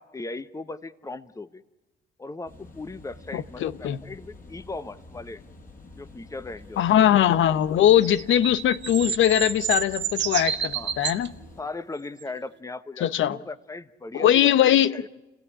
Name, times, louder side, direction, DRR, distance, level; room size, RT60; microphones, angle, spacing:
voice 1, 0.0-1.6 2.2-5.4 6.0-6.8 10.7-10.9 11.6-15.1, left 3 dB, 15° left, 1.1 m, -38 dB
sound 1, 2.4-11.6, left 2 dB, 45° left, 7.0 m, -48 dB
voice 2, 3.3-4.0 6.8-11.3 13.0-13.4 14.1-15.0, left 11 dB, 75° left, 1.0 m, -21 dB
sound 2, 7.9-11.3 12.2-12.3, right 9 dB, 65° right, 1.4 m, -30 dB
29.5 x 16.5 x 10.0 m
cardioid pair, 90°, 20 cm